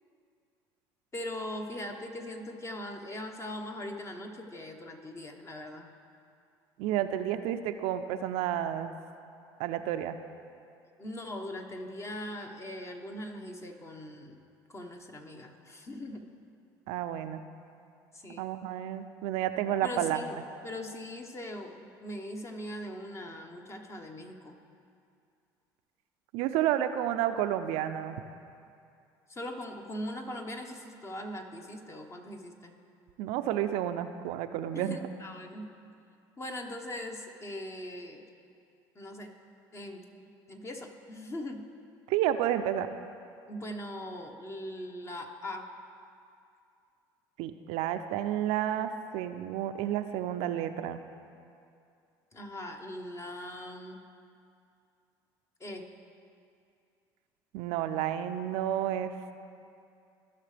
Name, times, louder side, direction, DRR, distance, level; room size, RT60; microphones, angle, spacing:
voice 1, 1.1-5.9 11.0-14.4 14.7-16.2 18.1-18.5 19.8-20.4 20.6-24.6 29.3-32.7 34.7-35.7 36.4-38.2 38.9-39.3 39.7-41.6 43.5-45.7 52.3-54.1 55.6-55.9, left 1 dB, 25° left, 4 dB, 1.2 m, -40 dB
voice 2, 6.8-8.9 9.6-10.2 16.9-17.4 18.4-20.2 26.3-28.2 33.2-35.0 42.1-42.9 47.4-51.0 57.5-59.1, right 11 dB, 70° right, 9 dB, 0.5 m, -30 dB
16.0 x 5.8 x 3.3 m, 2.5 s
hypercardioid pair, 75°, 11 cm